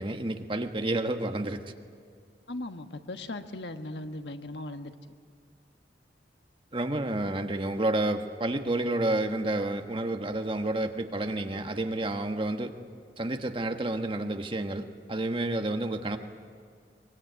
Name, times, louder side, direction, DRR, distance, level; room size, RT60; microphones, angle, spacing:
voice 1, 0.0-1.6 6.7-12.7 13.2-16.2, right 2 dB, 30° right, 6 dB, 1.3 m, -30 dB
voice 2, 2.5-4.9, left 2 dB, 75° left, 7 dB, 1.3 m, -38 dB
23.5 x 22.0 x 9.2 m, 2.2 s
head